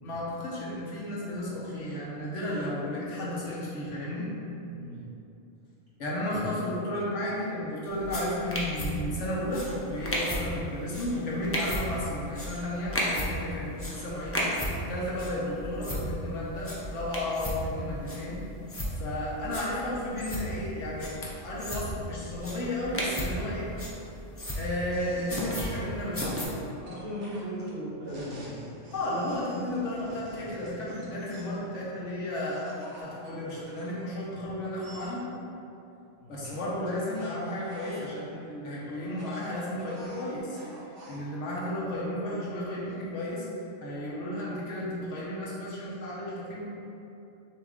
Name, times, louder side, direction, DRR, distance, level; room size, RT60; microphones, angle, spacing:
voice 1, 0.0-4.3 6.0-14.5 14.9-18.4 18.9-21.1 21.4-23.7 24.5-26.4 28.9-32.7 33.0-35.2 36.3-40.6 41.1-43.5 43.8-46.6, left 1 dB, 75° left, -6 dB, 1.3 m, -33 dB
voice 2, 4.7-5.0 26.8-28.6 36.2-36.4, equal, 45° right, -12 dB, 1.8 m, -37 dB
sound 1, 7.9-26.4, equal, 20° left, 0.3 m, -35 dB
sound 2, 24.9-26.2 26.8-31.7 32.5-33.9 34.7-35.2 36.4-38.1 39.0-41.2, equal, 70° right, 1.2 m, -49 dB
6.3 x 2.9 x 2.5 m, 2.8 s
omnidirectional pair, 1.3 m